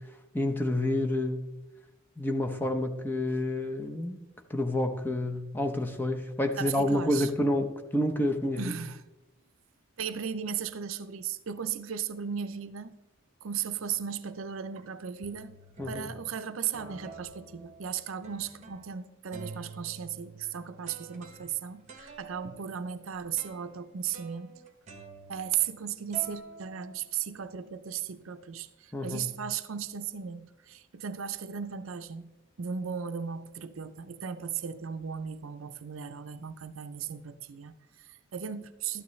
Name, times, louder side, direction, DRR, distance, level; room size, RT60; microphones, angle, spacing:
voice 1, 0.3-1.4 2.2-4.2 4.5-8.7 15.8-16.1 28.9-29.2, left 1 dB, 10° left, 0.7 m, -29 dB
voice 2, 6.6-7.3 8.6-9.0 10.0-13.0 13.4-15.6 15.8-24.5 25.3-32.3 32.6-39.0, right 8 dB, 70° right, 0.5 m, -36 dB
sound 1, 13.8-14.1 14.8-14.9 15.2-16.3 16.7-19.0 19.3-25.8 26.1-27.5, right 4 dB, 35° right, 1.1 m, -49 dB
12.5 x 9.5 x 3.2 m
head